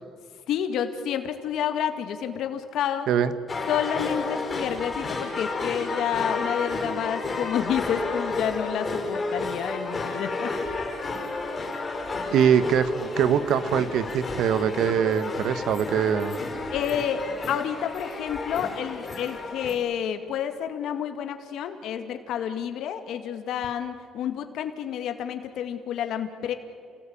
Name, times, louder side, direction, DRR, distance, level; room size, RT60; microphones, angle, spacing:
voice 1, 0.5-3.1 3.7-10.5 10.9-11.1 16.7-26.5, left 9 dB, 70° left, 7 dB, 2.1 m, -29 dB
sound 1, 3.5-19.7, left 3 dB, 25° left, 5.7 m, -31 dB
voice 2, 12.3-16.4, right 8 dB, 70° right, 13 dB, 1.5 m, -23 dB
29.5 x 19.0 x 8.8 m, 2.3 s
cardioid pair, 130°, 0 cm